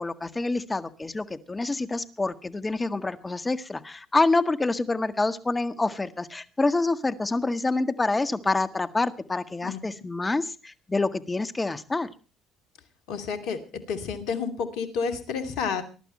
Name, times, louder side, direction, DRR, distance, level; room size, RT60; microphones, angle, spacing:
voice 1, 0.0-12.1, left 3 dB, 20° left, 11 dB, 1.8 m, -27 dB
voice 2, 13.1-15.8, left 6 dB, 70° left, 9 dB, 2.7 m, -30 dB
21.5 x 12.0 x 4.4 m, 0.36 s
hypercardioid pair, 60°, 0 cm